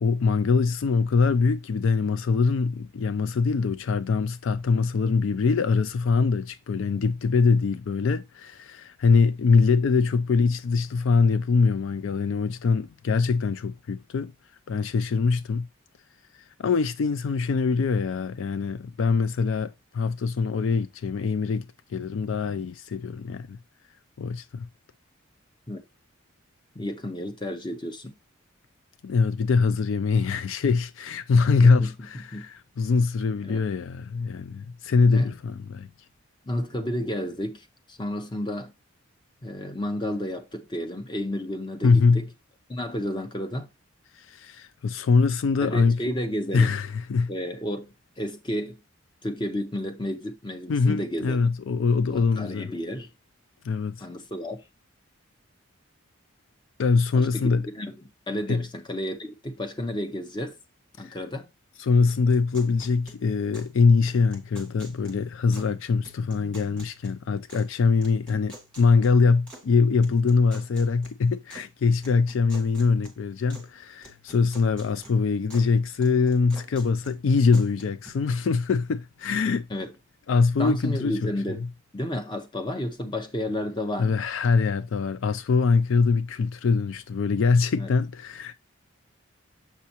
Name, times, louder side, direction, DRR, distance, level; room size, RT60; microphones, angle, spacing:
voice 1, 0.0-14.3 14.7-15.7 16.6-23.6 24.2-24.7 29.0-35.9 41.8-42.2 44.2-46.0 46.5-47.3 50.7-52.7 53.6-54.1 56.8-57.6 58.5-58.6 61.0-61.2 61.8-79.7 80.3-81.3 84.0-88.5, left 4 dB, 65° left, 0.4 m, -23 dB
voice 2, 26.7-28.1 31.6-32.4 33.4-33.6 35.0-35.3 36.5-38.7 39.4-42.3 42.7-43.7 45.6-46.8 47.3-48.8 49.2-51.5 52.1-53.1 54.0-54.6 57.1-57.5 57.7-57.9 58.3-60.6 61.0-61.5 79.7-79.9 80.6-81.7 81.9-84.2 87.8-87.9, left 1 dB, 20° left, 0.7 m, -32 dB
sound 1, 62.1-63.8 64.1-65.8 66.0-67.7 68.0-69.7 70.0-71.7 72.0-73.7 74.0-75.7 76.0-78.1, right 1 dB, 5° left, 1.7 m, -49 dB
7.2 x 5.7 x 2.9 m
head